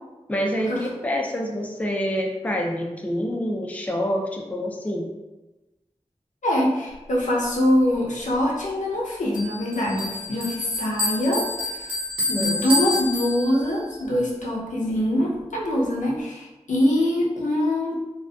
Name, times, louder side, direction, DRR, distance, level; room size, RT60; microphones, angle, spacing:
voice 1, 0.3-5.1 12.3-12.9, equal, 10° left, 0 dB, 0.4 m, -27 dB
voice 2, 6.4-11.9 12.3-18.0, left 1 dB, 85° left, -4 dB, 0.6 m, -24 dB
Bell, 9.3-13.9, left 2 dB, 50° right, 1.2 m, -28 dB
2.5 x 2.1 x 2.3 m, 1.1 s
wide cardioid pair, 45°, 12 cm